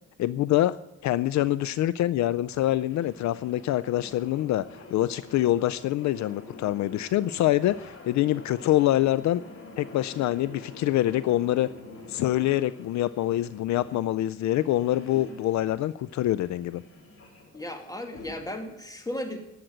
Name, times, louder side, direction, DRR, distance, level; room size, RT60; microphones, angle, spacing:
voice 1, 0.2-0.8 1.0-9.4 9.8-11.7 12.1-16.8, left 14 dB, 65° left, 16 dB, 0.5 m, -25 dB
sound 1, 2.3-18.7, left 2 dB, 45° left, 4.5 m, -47 dB
voice 2, 17.5-19.4, left 1 dB, 10° left, 4 dB, 2.4 m, -35 dB
12.0 x 7.7 x 8.0 m, 0.93 s
cardioid pair, 90°, 30 cm